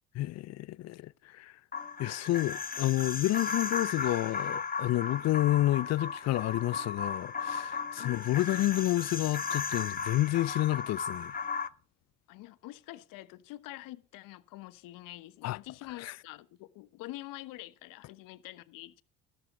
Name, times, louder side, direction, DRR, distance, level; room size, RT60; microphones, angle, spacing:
voice 1, 0.1-1.5 2.0-11.3 15.4-15.6 16.0-16.1, left 16 dB, 50° left, 0.5 m, -30 dB
sound 1, 1.7-11.7, left 5 dB, 25° left, 1.2 m, -36 dB
voice 2, 8.0-8.3 12.3-19.0, left 17 dB, 70° left, 1.2 m, -46 dB
13.5 x 13.0 x 3.9 m
hypercardioid pair, 60°, 34 cm